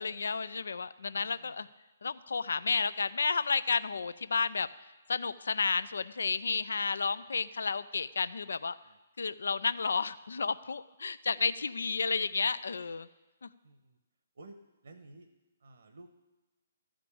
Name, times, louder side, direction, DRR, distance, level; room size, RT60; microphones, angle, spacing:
voice 1, 0.0-1.7 2.0-4.7 5.1-8.8 9.2-13.1 13.4-13.5, left 5 dB, 75° left, 16 dB, 0.4 m, -31 dB
voice 2, 1.1-1.6 8.4-9.0 13.6-14.0 14.3-14.6 14.8-15.3 15.6-16.1, right 2 dB, 70° right, 7 dB, 1.0 m, -54 dB
13.5 x 5.1 x 8.5 m, 1.1 s
hypercardioid pair, 140°, 0 cm